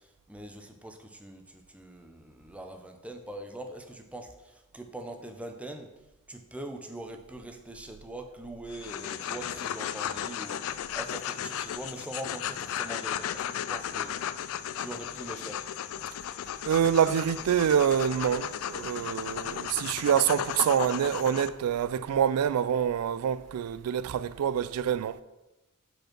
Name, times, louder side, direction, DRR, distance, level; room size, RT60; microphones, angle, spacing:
voice 1, 0.0-5.9 6.3-14.1 14.8-15.6, right 1 dB, 5° right, 0.6 m, -42 dB
sound 1, 8.7-21.5, left 10 dB, 65° left, 0.3 m, -35 dB
voice 2, 16.7-25.2, right 8 dB, 80° right, 0.3 m, -26 dB
5.3 x 4.4 x 5.9 m
head